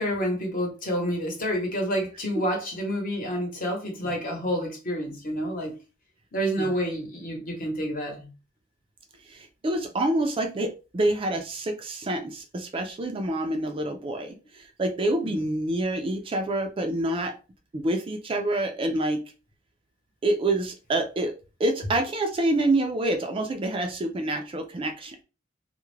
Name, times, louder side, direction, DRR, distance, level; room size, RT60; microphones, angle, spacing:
voice 1, 0.0-5.7 6.3-8.3 15.2-15.5, equal, 45° left, 0.9 m, -29 dB
voice 2, 9.3-17.3 17.7-19.2 20.2-21.3 21.6-25.2, right 1 dB, 30° right, 0.4 m, -27 dB
2.3 x 2.1 x 3.1 m
head